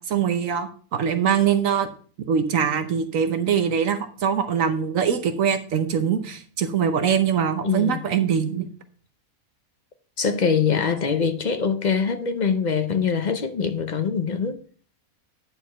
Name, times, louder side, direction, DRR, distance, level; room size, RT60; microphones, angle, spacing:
voice 1, 0.1-1.9 2.3-8.7, right 7 dB, 65° right, 1.1 m, -23 dB
voice 2, 7.6-8.1 10.2-14.6, left 6 dB, 50° left, 0.5 m, -23 dB
9.6 x 4.7 x 5.5 m
omnidirectional pair, 1.5 m